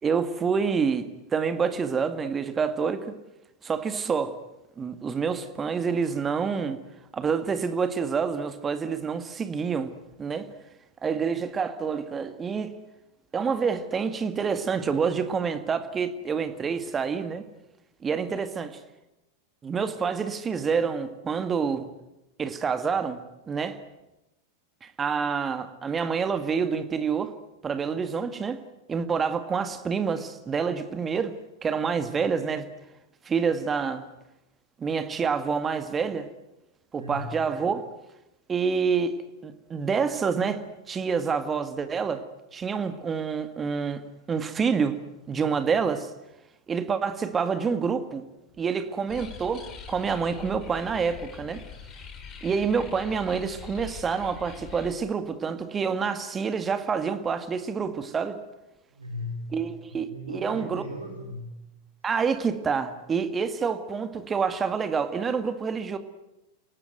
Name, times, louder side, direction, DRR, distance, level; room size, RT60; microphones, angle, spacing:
voice 1, 0.0-3.2 3.6-4.4 4.8-6.8 7.1-9.9 10.2-10.5 11.0-12.7 13.3-17.4 18.0-18.8 19.6-21.9 22.4-23.2 23.5-23.8 24.8-27.3 27.6-28.6 28.9-31.3 31.6-32.7 33.2-34.1 34.8-36.3 36.9-37.9 38.5-39.1 39.4-40.6 40.9-42.3 42.5-45.0 45.3-46.1 46.7-48.3 48.6-51.6 52.4-58.4 59.5-60.9 62.0-66.0, right 6 dB, 20° right, 9 dB, 2.1 m, -27 dB
voice 2, 37.0-37.5 58.9-61.7, left 1 dB, 85° right, 3 dB, 4.0 m, -38 dB
sound 1, 49.1-54.9, left 6 dB, 30° left, 4.6 m, -43 dB
30.0 x 18.0 x 9.3 m, 0.94 s
figure-of-eight pair, 90°, 0 cm